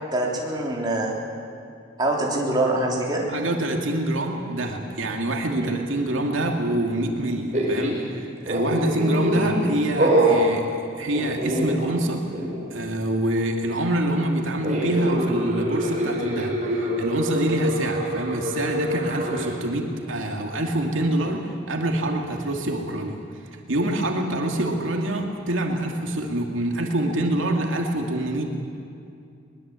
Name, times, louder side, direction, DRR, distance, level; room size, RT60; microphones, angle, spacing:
voice 1, 0.1-1.1 2.0-3.3 5.6-5.7 9.4-9.5, right 1 dB, 20° right, -3 dB, 3.6 m, -24 dB
voice 2, 3.3-12.2 12.7-23.2 23.7-28.5, right 1 dB, 85° right, 2 dB, 2.5 m, -26 dB
sound 1, 7.5-8.0 8.5-9.7 10.0-10.4 11.2-12.1 12.3-12.6 14.6-19.5, right 1 dB, 35° right, 4.8 m, -25 dB
22.0 x 21.0 x 8.4 m, 2.5 s
head